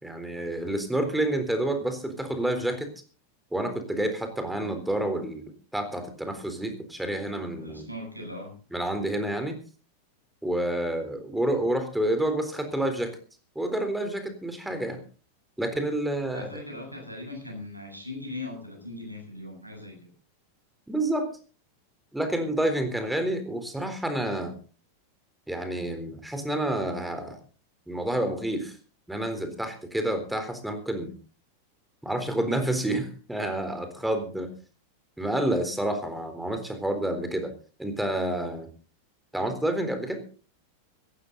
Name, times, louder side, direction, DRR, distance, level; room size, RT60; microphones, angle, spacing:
voice 1, 0.0-2.9 3.5-7.9 8.7-9.6 10.4-13.2 13.6-15.0 15.6-16.6 20.9-21.3 22.1-24.5 25.5-27.4 27.9-28.8 29.1-31.1 32.0-34.5 35.2-37.5 37.8-38.7 39.3-40.2, right 1 dB, 5° right, 7 dB, 3.8 m, -29 dB
voice 2, 7.6-8.5 16.3-20.1, left 2 dB, 85° right, 2 dB, 7.4 m, -39 dB
17.5 x 15.0 x 4.0 m, 0.37 s
figure-of-eight pair, 90°, 0 cm